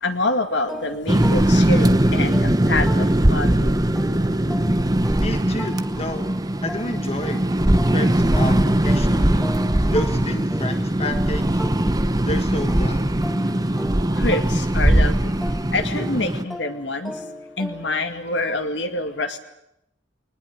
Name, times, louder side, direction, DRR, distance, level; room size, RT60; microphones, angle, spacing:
voice 1, 0.0-3.7 13.4-13.8 14.1-15.3 15.7-17.1 17.6-19.4, left 2 dB, 70° left, 7 dB, 2.3 m, -26 dB
sound 1, 0.7-3.6 4.0-12.3 12.7-18.1, equal, ahead, 2.2 m, -38 dB
sound 2, 1.1-16.4, right 1 dB, 20° right, 1.0 m, -20 dB
voice 2, 5.2-6.3 6.6-7.4 7.8-9.5 9.9-11.4 12.2-13.2, left 1 dB, 35° left, 7 dB, 1.4 m, -30 dB
21.5 x 20.0 x 9.6 m, 0.82 s
head